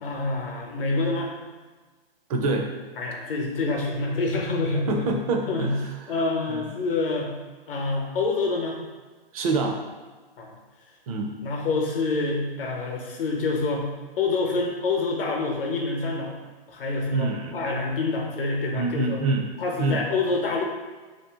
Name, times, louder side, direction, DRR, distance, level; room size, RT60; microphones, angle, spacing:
voice 1, 0.0-1.3 3.0-5.2 5.5-5.7 6.1-7.3 7.7-8.8 10.4-10.5 11.4-13.9 14.2-16.4 16.7-19.2 19.6-20.6, left 3 dB, 65° left, 0 dB, 0.8 m, -27 dB
voice 2, 2.3-2.7 4.9-5.9 6.5-6.7 9.3-9.8 11.1-11.3 17.1-17.6 18.7-19.5 19.8-20.0, right 3 dB, 35° right, 2 dB, 0.4 m, -26 dB
2.7 x 2.4 x 3.5 m, 1.3 s
hypercardioid pair, 135°, 30 cm